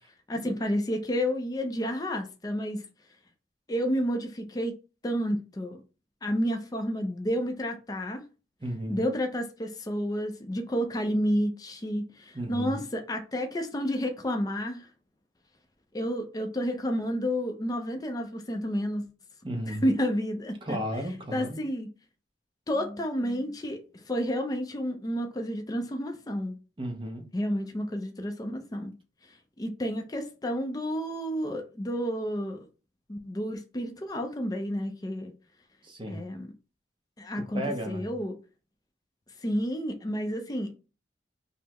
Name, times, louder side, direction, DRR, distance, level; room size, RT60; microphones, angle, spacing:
voice 1, 0.3-2.8 3.7-4.7 5.0-5.8 6.2-8.2 8.9-14.8 15.9-19.0 19.7-20.8 21.3-21.9 22.7-26.5 27.3-28.9 29.6-32.6 33.1-35.3 36.1-36.5 37.2-38.4 39.4-40.7, equal, 20° left, 0.4 m, -30 dB
voice 2, 8.6-9.0 12.3-12.8 19.4-19.9 20.6-21.6 26.8-27.3 35.8-36.2 37.3-38.1, equal, 25° right, 0.7 m, -34 dB
5.3 x 2.0 x 2.9 m
head